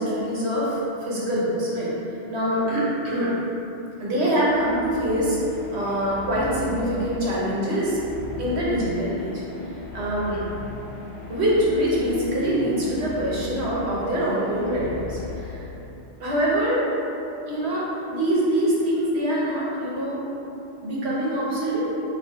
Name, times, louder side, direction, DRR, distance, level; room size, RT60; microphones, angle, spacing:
voice 1, 0.0-1.9 2.3-3.3 4.0-5.4 5.7-8.0 8.4-9.3 9.9-10.4 11.3-15.6 16.2-16.9 17.4-20.2 20.8-21.9, equal, 60° right, -6 dB, 1.1 m, -24 dB
sound 1, 4.4-16.0, left 4 dB, 60° left, 0.9 m, -38 dB
3.4 x 2.8 x 4.1 m, 3.0 s
omnidirectional pair, 1.3 m